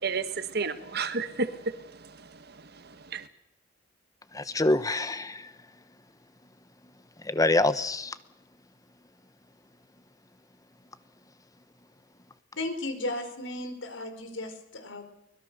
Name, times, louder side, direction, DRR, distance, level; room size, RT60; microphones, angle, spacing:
voice 1, 0.0-3.3, right 4 dB, 55° right, 11 dB, 1.6 m, -33 dB
voice 2, 4.3-5.5 7.2-8.2, left 2 dB, 20° left, 13 dB, 1.0 m, -26 dB
voice 3, 12.6-15.0, left 2 dB, 75° left, 8 dB, 4.6 m, -35 dB
24.0 x 21.5 x 6.8 m, 0.81 s
head